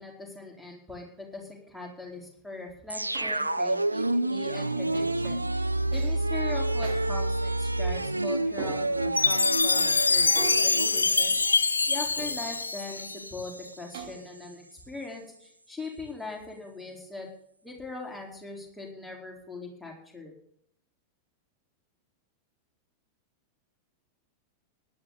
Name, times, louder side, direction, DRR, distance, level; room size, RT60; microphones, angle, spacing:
voice 1, 0.0-11.4 11.9-13.5 13.8-17.3 17.6-20.3, left 3 dB, 5° left, -1 dB, 4.3 m, -41 dB
sound 1, 2.9-13.7 14.0-14.1, right 2 dB, 85° right, 0.5 m, -29 dB
sound 2, 3.1-3.8 4.9-5.2 5.9-6.3 6.8-7.0 8.6-9.2 10.4-11.7 12.2-12.7 13.9-14.5, right 4 dB, 60° right, 3.1 m, -40 dB
Chime, 9.2-13.4, left 4 dB, 75° left, 0.4 m, -25 dB
18.0 x 11.5 x 4.1 m, 0.67 s
figure-of-eight pair, 90°, 0 cm